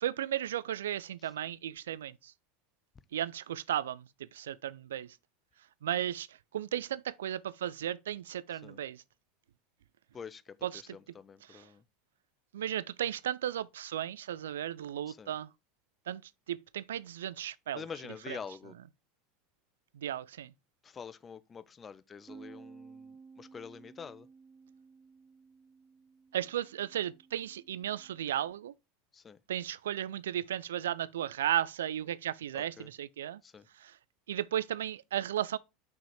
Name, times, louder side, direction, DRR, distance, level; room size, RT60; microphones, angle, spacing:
voice 1, 0.0-2.3 3.1-5.2 5.8-9.0 10.6-10.8 11.4-11.7 12.5-15.5 16.1-17.8 18.3-18.4 19.9-20.5 26.3-28.7 29.5-33.4 33.7-34.0 34.3-35.6, right 11 dB, 70° right, 0.3 m, -35 dB
voice 2, 10.1-11.8 15.1-15.3 17.7-18.7 20.8-24.3 29.1-29.4 32.5-32.9 33.4-33.7, left 6 dB, 25° left, 0.5 m, -46 dB
Bass guitar, 22.3-28.5, right 4 dB, 20° right, 1.7 m, -55 dB
5.8 x 5.0 x 4.8 m
figure-of-eight pair, 80°, 0 cm